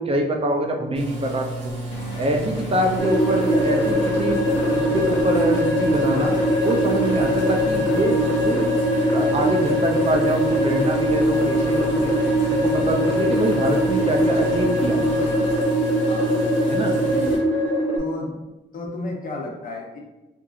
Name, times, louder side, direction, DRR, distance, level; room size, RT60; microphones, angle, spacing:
voice 1, 0.0-1.5 2.2-4.4 4.7-6.3 6.6-8.7 9.1-12.1 12.5-15.0 16.7-16.9, right 1 dB, 30° right, 2 dB, 0.4 m, -24 dB
sound 1, 1.0-17.4, right 2 dB, 75° right, 1.1 m, -32 dB
sound 2, 1.9-15.6, left 1 dB, 90° left, 0.6 m, -37 dB
sound 3, 3.0-18.0, equal, 10° left, 0.7 m, -21 dB
voice 2, 16.1-16.5 17.1-17.5 18.0-18.4 18.7-20.0, left 2 dB, 45° left, 0 dB, 0.6 m, -33 dB
2.9 x 2.5 x 2.4 m, 1.0 s
cardioid pair, 90°, 20 cm